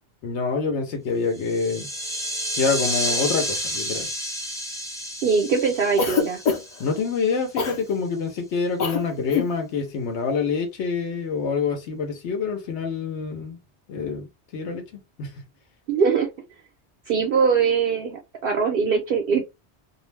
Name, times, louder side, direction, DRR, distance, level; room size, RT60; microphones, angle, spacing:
voice 1, 0.2-1.9 2.6-4.1 6.8-13.6 13.9-14.3 14.5-15.4, left 5 dB, 90° left, 1.0 m, -26 dB
sound 1, 1.3-7.4, equal, 5° left, 0.3 m, -30 dB
voice 2, 5.2-6.4 15.9-16.3 17.1-19.4, right 6 dB, 65° right, 0.7 m, -22 dB
Cough, 6.0-6.8 7.6-7.8 8.8-9.0 9.3-9.5, left 5 dB, 55° left, 0.6 m, -24 dB
2.4 x 2.0 x 3.1 m
omnidirectional pair, 1.1 m